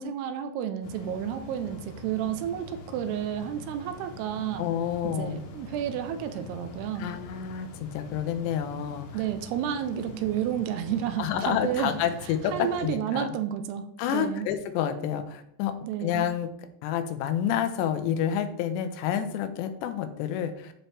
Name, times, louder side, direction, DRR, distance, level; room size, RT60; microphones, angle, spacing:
voice 1, 0.0-4.7 5.0-7.1 9.1-11.9 12.2-14.5 15.8-16.3, right 9 dB, 80° right, 8 dB, 2.5 m, -31 dB
sound 1, 0.8-12.9, left 2 dB, 70° left, 2.9 m, -44 dB
voice 2, 4.6-5.4 7.0-9.1 11.2-13.3 14.0-16.5 16.8-20.7, left 9 dB, 85° left, 8 dB, 2.9 m, -29 dB
12.5 x 4.5 x 3.3 m, 0.73 s
omnidirectional pair, 5.0 m